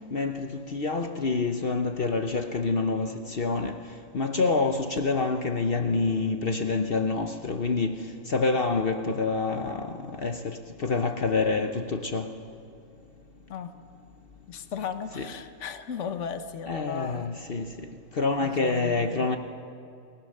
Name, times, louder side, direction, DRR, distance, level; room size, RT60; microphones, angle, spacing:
voice 1, 0.1-3.8 4.1-8.0 8.3-12.3 15.2-15.3 16.7-17.7 18.2-19.4, left 3 dB, 50° left, 1.1 m, -27 dB
voice 2, 14.5-17.3 18.4-19.3, left 7 dB, 70° left, 1.4 m, -36 dB
29.5 x 19.5 x 6.6 m
omnidirectional pair, 1.3 m